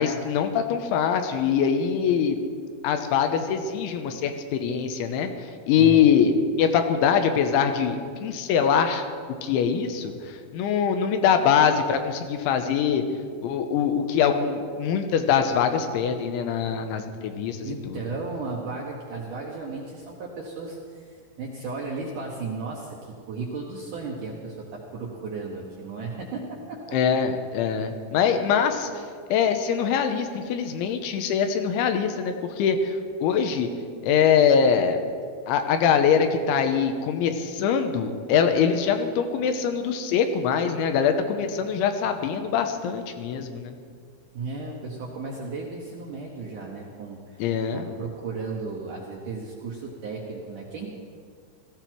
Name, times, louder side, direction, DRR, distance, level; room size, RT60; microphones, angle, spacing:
voice 1, 0.0-2.4 2.8-5.3 5.7-9.0 9.4-13.0 13.4-18.0 26.9-28.9 29.3-33.7 34.0-35.0 35.5-43.8 47.4-47.9, left 7 dB, 85° left, 6 dB, 3.3 m, -23 dB
voice 2, 5.8-6.1 17.6-27.0 44.3-47.4 47.7-50.9, right 3 dB, 70° right, -2 dB, 2.0 m, -35 dB
17.0 x 14.5 x 4.6 m, 2.1 s
omnidirectional pair, 5.4 m